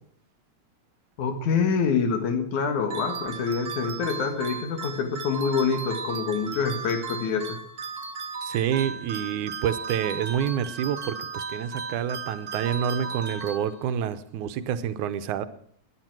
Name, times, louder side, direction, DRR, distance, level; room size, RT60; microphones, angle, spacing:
voice 1, 1.2-7.6, left 5 dB, 80° left, 7 dB, 3.2 m, -26 dB
sound 1, 2.9-14.1, right 5 dB, 70° right, 0.7 m, -36 dB
voice 2, 8.4-15.5, right 9 dB, 90° right, 12 dB, 2.3 m, -28 dB
19.5 x 10.0 x 6.1 m, 0.65 s
omnidirectional pair, 3.4 m